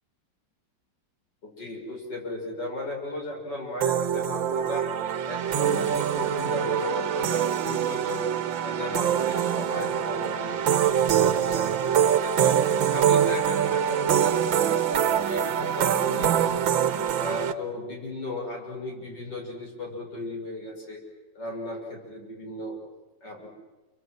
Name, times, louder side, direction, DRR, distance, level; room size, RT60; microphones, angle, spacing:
voice 1, 1.4-4.8 5.2-8.3 8.6-10.6 10.9-12.6 12.9-16.6 17.2-21.0 21.4-22.8 23.2-23.5, left 1 dB, 65° left, 0 dB, 7.0 m, -35 dB
sound 1, 3.8-17.5, right 9 dB, 85° right, 1.8 m, -24 dB
29.5 x 23.5 x 7.8 m, 1.2 s
omnidirectional pair, 2.0 m